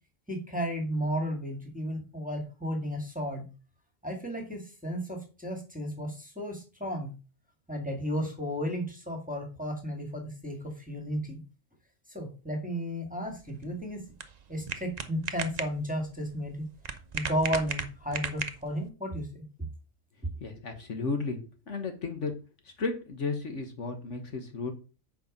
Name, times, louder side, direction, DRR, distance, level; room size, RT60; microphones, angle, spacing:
voice 1, 0.3-3.5 4.0-7.1 7.7-11.4 12.1-14.0 14.5-16.7 17.1-19.4, equal, 5° right, 1 dB, 1.9 m, -33 dB
sound 1, 13.3-18.9, right 5 dB, 40° right, 0.7 m, -38 dB
voice 2, 20.4-21.4 21.7-22.3 22.6-24.7, left 4 dB, 60° left, 5 dB, 1.6 m, -33 dB
8.0 x 5.3 x 5.3 m, 0.33 s
omnidirectional pair, 1.4 m